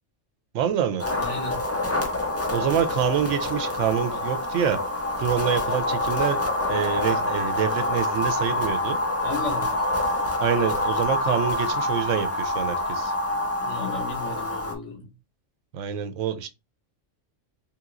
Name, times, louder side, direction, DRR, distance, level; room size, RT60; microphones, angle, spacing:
voice 1, 0.5-1.0 2.5-4.8 5.2-6.4 6.7-9.0 10.4-13.1 15.7-16.5, right 9 dB, 85° right, 0.9 m, -26 dB
sound 1, 1.0-14.7, left 2 dB, 25° left, 0.3 m, -26 dB
voice 2, 1.2-1.6 9.2-9.8 13.6-15.1, left 4 dB, 75° left, 1.4 m, -34 dB
3.5 x 2.9 x 2.5 m
omnidirectional pair, 1.3 m